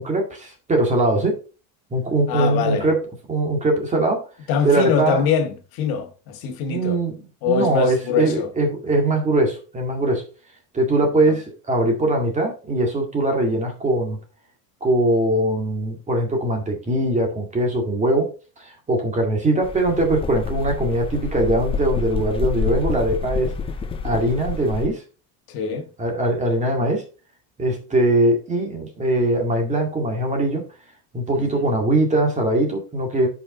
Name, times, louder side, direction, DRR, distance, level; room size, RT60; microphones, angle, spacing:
voice 1, 0.0-1.4 1.9-3.0 3.3-4.3 4.6-5.2 6.7-7.2 7.4-10.2 10.7-14.2 14.8-18.3 18.6-23.5 24.0-25.0 26.0-27.0 27.6-30.6 31.1-33.3, right 1 dB, 15° right, 2.0 m, -21 dB
voice 2, 2.3-2.9 4.5-7.0 7.4-8.5 11.2-11.4 25.5-25.9 31.3-31.6, left 6 dB, 60° left, 1.6 m, -23 dB
sound 1, 19.6-24.9, left 5 dB, 15° left, 0.3 m, -28 dB
8.5 x 5.6 x 3.8 m
cardioid pair, 160°, 40 cm